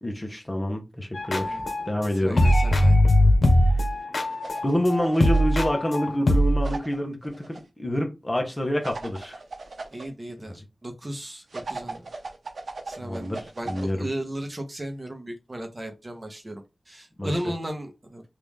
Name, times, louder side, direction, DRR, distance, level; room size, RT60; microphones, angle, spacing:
voice 1, 0.0-1.6 1.9-2.5 4.6-9.4 10.5-10.6 13.0-14.1 17.2-17.3, equal, 25° left, 0.9 m, -27 dB
sound 1, 1.1-2.1 2.3-6.7, left 1 dB, 80° left, 0.9 m, -21 dB
voice 2, 2.2-3.0 9.9-12.1 12.9-18.2, right 1 dB, 30° right, 0.8 m, -35 dB
sound 2, 4.2-5.6 6.6-7.6 8.8-10.1 11.5-13.9, right 3 dB, 90° right, 0.7 m, -38 dB
3.1 x 2.5 x 3.5 m
wide cardioid pair, 80°, 0 cm